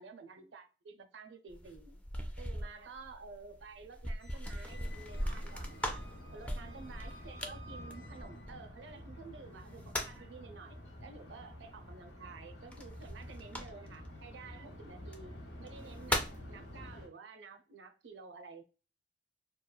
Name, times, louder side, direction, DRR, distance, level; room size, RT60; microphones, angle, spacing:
voice 1, 0.0-2.0 2.4-6.1 6.3-18.6, right 4 dB, 90° right, 0.5 m, -51 dB
sound 1, 1.5-8.9 9.5-10.3 12.7-14.1 15.0-15.2 15.7-16.5, left 1 dB, 10° left, 0.3 m, -39 dB
Squeak, 4.2-8.7, equal, 60° left, 0.5 m, -56 dB
sound 2, 4.7-17.1, left 1 dB, 90° left, 1.0 m, -50 dB
2.9 x 2.3 x 2.2 m
head